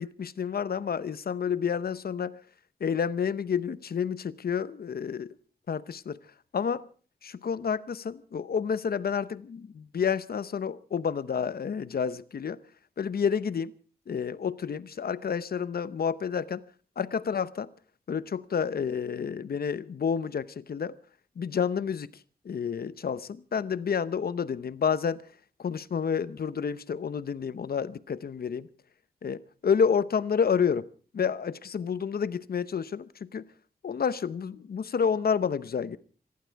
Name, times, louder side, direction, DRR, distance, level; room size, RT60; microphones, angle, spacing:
voice 1, 0.0-2.4 2.8-5.4 5.7-6.2 6.5-6.9 7.2-12.6 13.0-13.7 14.1-16.7 17.0-17.7 18.1-21.0 21.4-25.3 25.6-28.7 29.2-33.5 33.8-36.0, left 7 dB, 70° left, 0.8 m, -29 dB
26.5 x 11.5 x 4.7 m
wide cardioid pair, 140°, 17 cm